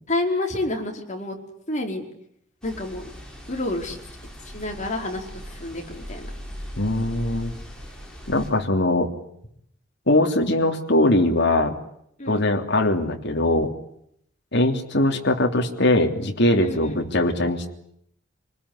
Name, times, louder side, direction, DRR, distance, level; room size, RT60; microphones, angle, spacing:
voice 1, 0.1-1.4 1.7-2.0 2.6-3.1 3.5-4.0 4.5-6.3 12.2-12.4 16.6-17.0, left 2 dB, 40° left, 2 dB, 5.0 m, -29 dB
sound 1, 2.6-8.5, equal, 5° left, 6.7 m, -39 dB
voice 2, 6.8-7.5 8.3-9.1 10.1-11.7 12.3-13.7 14.5-17.7, left 1 dB, 60° left, 3 dB, 3.2 m, -21 dB
27.0 x 20.0 x 9.9 m, 0.72 s
head